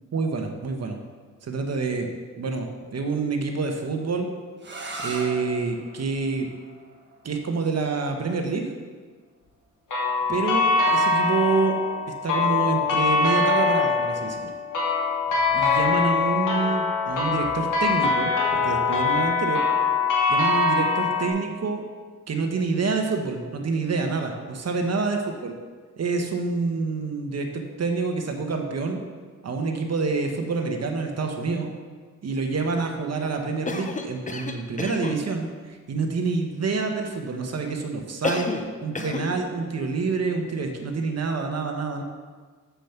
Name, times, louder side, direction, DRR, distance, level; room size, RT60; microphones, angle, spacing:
voice 1, 0.1-1.0 1.4-2.1 2.4-4.3 5.0-6.5 7.2-8.7 10.3-11.8 12.2-14.5 15.5-19.6 20.3-21.8 22.3-25.5 26.0-29.0 29.4-31.7 32.2-38.5 38.8-42.0, right 4 dB, 55° right, 4 dB, 1.2 m, -27 dB
sound 1, 4.6-10.3, right 2 dB, 35° right, 1.6 m, -41 dB
sound 2, 9.9-21.3, left 4 dB, 90° left, 2.1 m, -23 dB
Cough, 33.7-35.2 38.2-38.7 39.0-39.3, left 3 dB, 25° left, 0.8 m, -30 dB
7.3 x 7.0 x 5.8 m, 1.5 s
wide cardioid pair, 115°, 31 cm